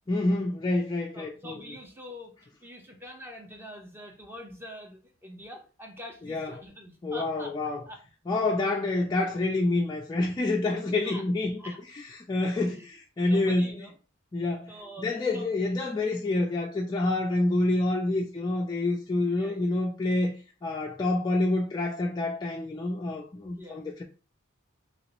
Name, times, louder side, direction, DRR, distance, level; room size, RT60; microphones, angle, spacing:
voice 1, 0.1-1.6 6.2-6.6 7.0-7.8 8.3-11.6 11.9-13.9 14.3-20.3 20.6-24.0, left 2 dB, 20° left, 0.3 m, -27 dB
voice 2, 1.1-2.3 2.6-7.5 7.9-8.0 11.0-11.2 11.6-11.8 12.6-12.9 13.2-13.9 14.7-15.5 19.4-19.8 23.6-23.8, equal, 10° right, 0.7 m, -44 dB
2.9 x 2.9 x 2.9 m
head